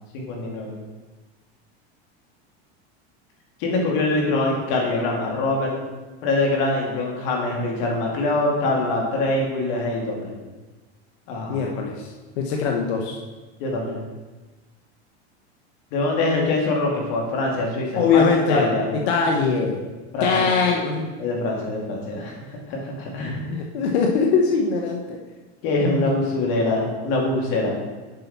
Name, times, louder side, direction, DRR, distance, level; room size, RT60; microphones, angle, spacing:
voice 1, 0.1-0.7 3.6-5.7 6.2-10.3 11.3-11.7 13.6-14.0 15.9-18.9 20.1-20.5 21.2-22.3 22.7-23.4 25.6-27.7, left 2 dB, 60° left, -1 dB, 2.5 m, -24 dB
voice 2, 11.5-13.2 17.9-19.8 20.2-21.1 23.5-25.2, left 5 dB, 75° left, 1 dB, 1.1 m, -22 dB
7.7 x 5.8 x 4.2 m, 1.2 s
supercardioid pair, 140°, 33 cm